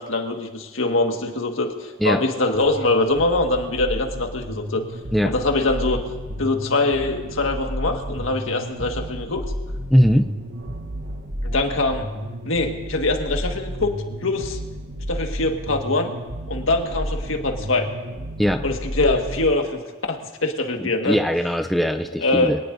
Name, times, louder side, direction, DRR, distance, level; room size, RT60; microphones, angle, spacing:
voice 1, 0.0-4.8 5.2-6.0 6.4-9.4 11.4-12.1 12.4-13.9 14.2-14.6 15.1-16.2 16.5-17.9 18.6-19.8 20.1-21.2 22.2-22.5, left 2 dB, 90° left, 3 dB, 1.7 m, -23 dB
sound 1, 2.5-19.4, equal, 85° right, 1.2 m, -32 dB
voice 2, 9.9-10.3 18.4-18.6 20.8-22.6, equal, ahead, 5 dB, 0.4 m, -20 dB
25.0 x 18.0 x 2.7 m, 1.2 s
head